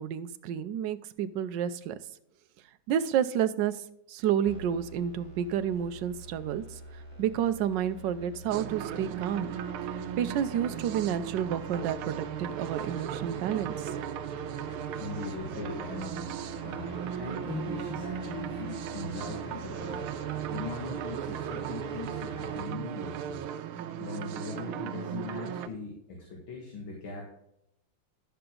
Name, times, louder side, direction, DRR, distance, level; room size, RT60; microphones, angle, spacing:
voice 1, 0.0-1.9 2.9-3.8 4.1-6.8 7.2-9.5 10.2-14.0, right 9 dB, 70° right, 11 dB, 1.2 m, -30 dB
sound 1, 4.5-22.6, left 2 dB, 15° left, 3.3 m, -47 dB
sound 2, 8.5-25.7, right 9 dB, 90° right, 1.5 m, -37 dB
voice 2, 14.7-23.5 24.0-27.3, left 3 dB, 70° left, -1 dB, 2.6 m, -40 dB
11.5 x 6.8 x 3.8 m, 0.79 s
omnidirectional pair, 2.3 m